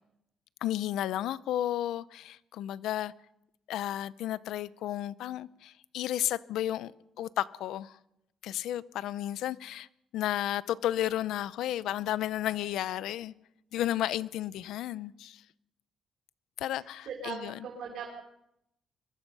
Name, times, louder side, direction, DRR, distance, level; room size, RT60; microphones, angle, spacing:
voice 1, 0.6-3.1 3.7-6.9 7.2-8.0 8.4-9.9 10.1-13.3 13.7-15.4 16.6-17.6, left 12 dB, 85° left, 18 dB, 0.7 m, -33 dB
voice 2, 16.7-18.1, right 6 dB, 75° right, -1 dB, 4.0 m, -40 dB
23.5 x 21.5 x 5.5 m, 0.84 s
cardioid pair, 90°, 0 cm